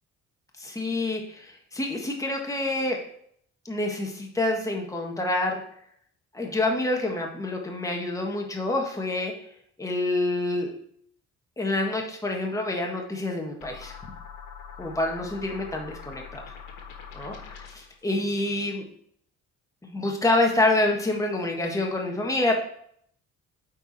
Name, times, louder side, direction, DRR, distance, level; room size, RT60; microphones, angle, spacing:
voice 1, 0.6-3.0 3.6-5.6 6.3-9.3 9.8-10.7 11.6-14.1 14.8-16.4 17.1-18.8 19.8-22.5, left 2 dB, 10° left, 0 dB, 1.6 m, -27 dB
sound 1, 13.6-18.0, left 6 dB, 85° left, 1.4 m, -43 dB
8.5 x 4.7 x 4.2 m, 0.66 s
cardioid pair, 90°, 30 cm